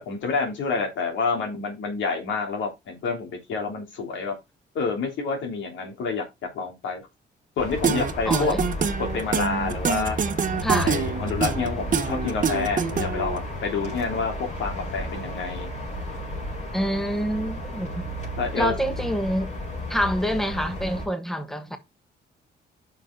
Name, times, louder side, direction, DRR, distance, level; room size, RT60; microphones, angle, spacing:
voice 1, 0.0-4.3 4.7-6.2 6.5-7.0 7.6-8.5 9.0-10.2 10.8-15.7 18.4-18.7, left 4 dB, 85° left, 3.2 m, -28 dB
sound 1, 7.6-21.1, left 1 dB, 40° left, 4.8 m, -33 dB
sound 2, 7.8-13.4, right 6 dB, 45° right, 1.1 m, -25 dB
voice 2, 8.2-8.6 10.6-10.9 16.7-18.0 18.5-19.5 19.9-21.8, equal, ahead, 1.4 m, -26 dB
9.1 x 6.0 x 3.8 m
cardioid pair, 105°, 19 cm